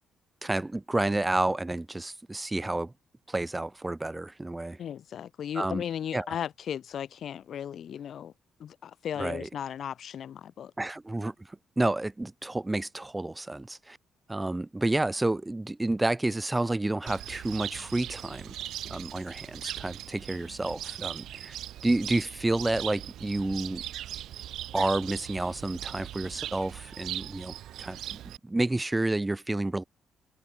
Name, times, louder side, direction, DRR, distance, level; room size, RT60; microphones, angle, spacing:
voice 1, 0.4-2.9 3.3-4.8 5.5-5.8 6.1-6.3 9.2-9.5 10.8-11.3 11.8-14.0 14.3-18.6 18.8-21.5 21.8-23.8 24.7-29.8, right 2 dB, 15° right, 2.8 m, -30 dB
voice 2, 4.8-8.3 8.6-10.7, left 9 dB, 60° left, 2.6 m, -36 dB
Cricket, 17.1-28.4, right 12 dB, 80° right, 6.9 m, -40 dB
cardioid pair, 90°, 0 cm